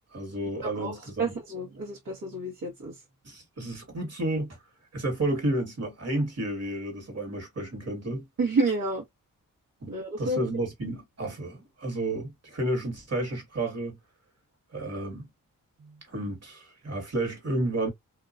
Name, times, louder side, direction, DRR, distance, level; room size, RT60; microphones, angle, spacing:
voice 1, 0.1-1.4 3.2-4.6 4.9-8.2 9.8-14.0 14.7-15.3 16.1-17.9, right 1 dB, 45° right, 1.8 m, -31 dB
voice 2, 0.6-2.9 8.4-9.0 9.9-10.4, right 3 dB, 65° right, 1.5 m, -29 dB
2.9 x 2.2 x 2.5 m
cardioid pair, 70°, 34 cm